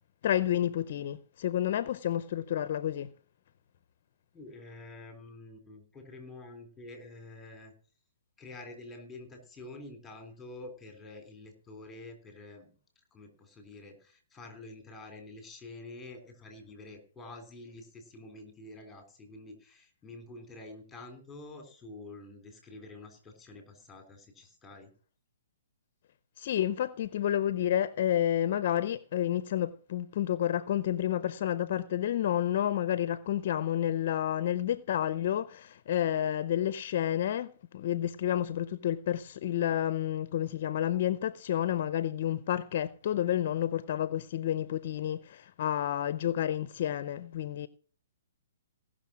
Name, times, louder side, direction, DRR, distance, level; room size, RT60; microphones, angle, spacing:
voice 1, 0.2-3.1 26.4-47.7, left 11 dB, 50° left, 0.6 m, -30 dB
voice 2, 4.3-7.7 8.4-12.7 13.1-24.9, left 2 dB, 10° left, 3.4 m, -48 dB
17.0 x 6.2 x 6.0 m
hypercardioid pair, 150°, 0 cm